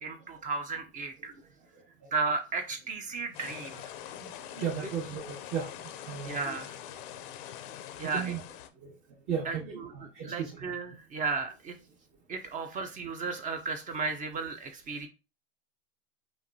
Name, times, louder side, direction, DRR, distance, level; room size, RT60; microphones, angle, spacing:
voice 1, 0.0-1.3 2.1-3.9 4.8-4.9 6.2-6.7 8.0-8.3 9.5-11.8 12.3-15.1, right 4 dB, 25° right, 6 dB, 0.6 m, -34 dB
sound 1, 3.3-8.7, left 11 dB, 55° left, 0.6 m, -44 dB
voice 2, 4.2-5.7 6.0-6.6 8.0-8.4 8.8-8.9 9.3-10.5, right 7 dB, 50° right, -5 dB, 1.5 m, -35 dB
5.7 x 2.6 x 2.8 m, 0.32 s
hypercardioid pair, 110°, 32 cm